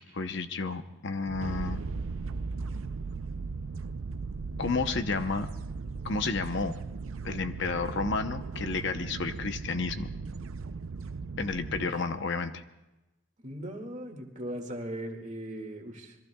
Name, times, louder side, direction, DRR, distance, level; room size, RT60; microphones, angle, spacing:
voice 1, 0.1-1.8 4.6-5.5 6.0-6.7 7.2-10.1 11.4-12.6, left 4 dB, 60° left, 9 dB, 0.8 m, -31 dB
sound 1, 1.3-11.9, right 4 dB, 85° right, 0.5 m, -37 dB
voice 2, 11.7-12.0 13.4-16.2, right 1 dB, 40° right, 2 dB, 2.1 m, -39 dB
27.0 x 22.0 x 2.3 m, 1.0 s
head